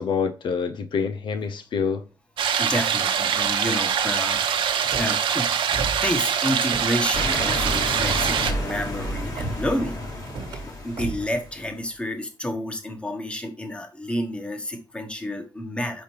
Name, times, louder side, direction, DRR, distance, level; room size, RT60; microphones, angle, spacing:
voice 1, 0.0-2.0, left 6 dB, 70° left, 0.6 m, -26 dB
sound 1, 2.4-8.5, right 8 dB, 85° right, 0.8 m, -24 dB
voice 2, 2.6-5.5 5.8-10.0 10.5-16.0, left 1 dB, 15° left, 1.2 m, -30 dB
Car / Slam, 4.8-5.2 5.7-6.2 6.5-7.1 7.7-7.9 8.3-8.8 9.4-9.8 10.2-10.6 11.0-11.3, right 3 dB, 65° right, 1.4 m, -35 dB
sound 2, 7.1-11.6, left 1 dB, 45° left, 2.1 m, -30 dB
5.1 x 5.0 x 4.5 m
wide cardioid pair, 125°, 8 cm